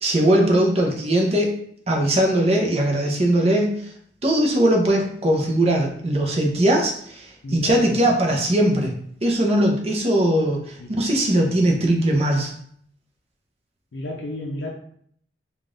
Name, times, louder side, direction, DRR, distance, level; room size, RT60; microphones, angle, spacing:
voice 1, 0.0-1.5 1.9-3.8 4.2-8.9 9.2-12.5, right 1 dB, 35° right, 0 dB, 0.7 m, -20 dB
voice 2, 7.4-8.1 10.8-11.0 13.9-14.7, left 1 dB, 70° left, -2 dB, 0.5 m, -32 dB
3.7 x 2.4 x 3.7 m, 0.64 s
head